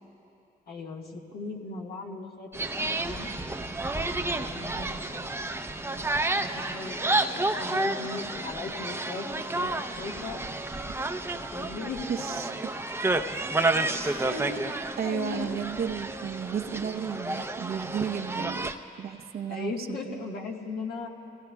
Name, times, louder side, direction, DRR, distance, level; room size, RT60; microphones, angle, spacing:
voice 1, 0.7-3.3 4.1-5.3 6.3-9.7 10.0-10.4 10.6-10.8 11.3-12.0 14.1-14.7 15.0-15.5 19.5-21.1, left 4 dB, 70° left, 0 dB, 1.6 m, -38 dB
sound 1, 2.5-18.7, right 2 dB, 15° right, 0.7 m, -30 dB
voice 2, 12.1-12.8 14.0-14.6 15.0-18.7 19.0-20.2, right 7 dB, 65° right, 5 dB, 0.8 m, -33 dB
24.0 x 17.0 x 2.3 m, 2.7 s
supercardioid pair, 55°, 17 cm